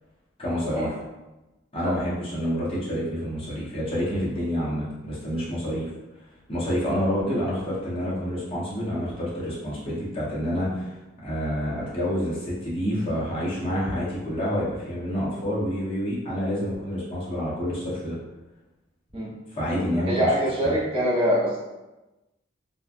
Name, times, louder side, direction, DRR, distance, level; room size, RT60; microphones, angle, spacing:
voice 1, 0.4-0.9 1.7-5.8 6.5-10.9 11.2-18.1 19.5-20.1 20.6-20.7, equal, 30° left, -8 dB, 0.9 m, -28 dB
voice 2, 20.0-21.6, equal, 30° right, -9 dB, 0.7 m, -23 dB
3.1 x 2.2 x 2.5 m, 1.1 s
head